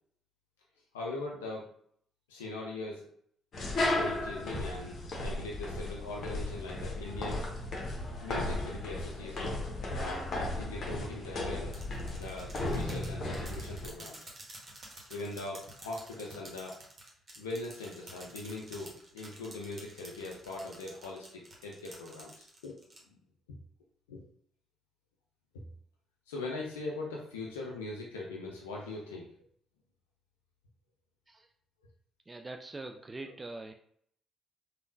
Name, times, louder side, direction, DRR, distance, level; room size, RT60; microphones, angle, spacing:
voice 1, 0.9-1.7 2.3-3.1 3.8-7.5 8.2-9.5 10.0-11.8 12.1-14.3 15.1-16.8 17.4-22.8 23.1-23.2 23.5-23.6 24.1-24.2 25.5-25.6 26.3-29.3 33.2-33.3, left 2 dB, 80° left, -2 dB, 0.4 m, -41 dB
sound 1, 3.5-13.9, left 1 dB, 50° left, 0.7 m, -35 dB
sound 2, 11.7-23.0, right 1 dB, 40° right, 1.0 m, -50 dB
voice 2, 32.3-33.7, right 2 dB, 25° right, 4 dB, 0.3 m, -43 dB
3.4 x 2.2 x 2.6 m, 0.63 s
figure-of-eight pair, 45°, 0 cm